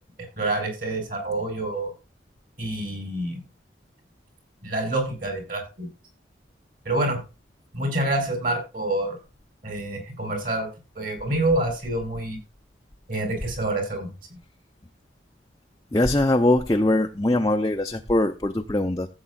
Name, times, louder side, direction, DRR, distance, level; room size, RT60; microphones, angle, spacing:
voice 1, 0.4-1.9 2.6-3.4 4.6-5.9 6.8-7.2 7.7-9.2 9.6-10.7 10.9-12.4 13.1-14.1, right 2 dB, 50° right, 5.0 m, -27 dB
voice 2, 15.9-19.1, left 1 dB, 20° left, 0.6 m, -22 dB
15.0 x 8.1 x 2.4 m
head